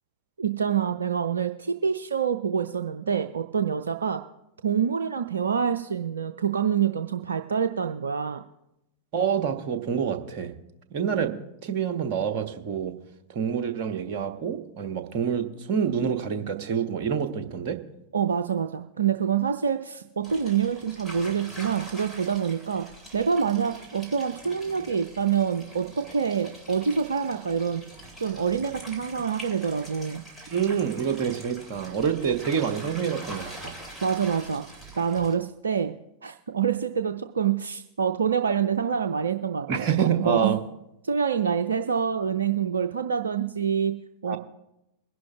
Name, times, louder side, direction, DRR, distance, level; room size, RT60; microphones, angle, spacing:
voice 1, 0.4-4.2 4.6-8.4 18.1-22.8 23.1-27.8 28.2-30.2 34.0-34.6 35.0-35.9 36.2-39.9 40.2-40.5 41.0-44.0 44.2-44.4, right 7 dB, 70° right, 8 dB, 0.4 m, -26 dB
voice 2, 9.1-10.5 10.9-11.3 11.6-12.9 13.3-17.8 30.5-33.7 39.7-40.6 44.3-44.4, right 7 dB, 45° right, 7 dB, 1.2 m, -27 dB
sound 1, 20.2-35.3, right 1 dB, 5° right, 3.1 m, -44 dB
22.0 x 11.0 x 2.4 m, 0.88 s
figure-of-eight pair, 90°, 0 cm